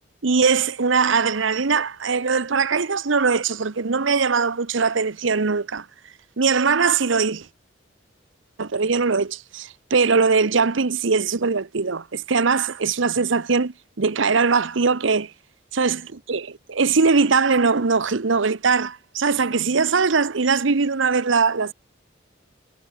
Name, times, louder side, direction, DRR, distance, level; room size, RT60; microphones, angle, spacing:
voice 1, 0.2-5.8 6.4-7.5 8.6-15.3 15.7-21.7, right 4 dB, 75° right, 0.9 m, -21 dB
head